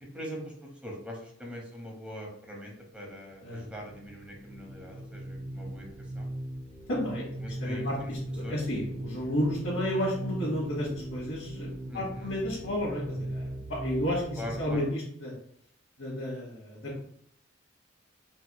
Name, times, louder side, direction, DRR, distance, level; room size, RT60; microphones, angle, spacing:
voice 1, 0.0-5.8 6.2-6.3 7.4-8.1 8.4-8.5 11.9-12.3 14.4-14.8, equal, 5° right, -1 dB, 0.8 m, -42 dB
sound 1, 3.4-14.7, right 1 dB, 85° right, 1.3 m, -39 dB
voice 2, 6.9-7.3 7.6-15.3 16.0-17.0, left 1 dB, 70° left, -7 dB, 1.1 m, -32 dB
4.1 x 2.8 x 2.2 m, 0.64 s
head